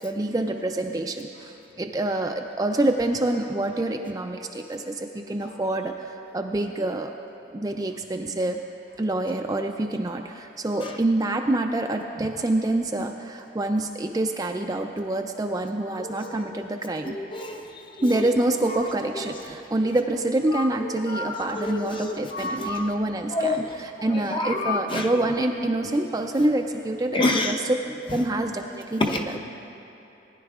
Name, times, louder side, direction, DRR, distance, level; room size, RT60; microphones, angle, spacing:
voice 1, 0.0-7.1 7.5-8.6 9.0-17.1 18.0-27.7 28.1-29.3, right 2 dB, 20° right, 3 dB, 0.3 m, -26 dB
voice 2, 16.0-16.5 17.1-17.6 20.8-22.8 23.3-23.8 24.3-25.1 27.1-27.5 29.0-29.4, left 2 dB, 25° left, 3 dB, 0.6 m, -28 dB
19.5 x 10.5 x 2.4 m, 3.0 s
head